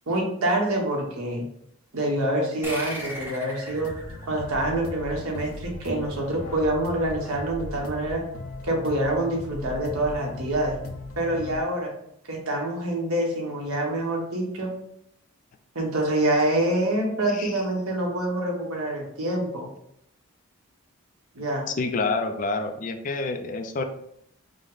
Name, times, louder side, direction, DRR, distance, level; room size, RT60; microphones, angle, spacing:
voice 1, 0.1-1.5 1.9-3.9 4.3-8.2 8.6-10.8 11.2-11.9 12.3-14.7 15.7-19.7 21.3-21.7, right 1 dB, 80° right, -1 dB, 1.2 m, -26 dB
sound 1, 2.6-5.7, equal, 10° right, 0.6 m, -38 dB
sound 2, 3.7-11.6, left 2 dB, 80° left, 0.7 m, -38 dB
voice 2, 21.7-23.8, left 3 dB, 35° left, 7 dB, 0.3 m, -28 dB
5.1 x 2.1 x 3.8 m, 0.74 s
head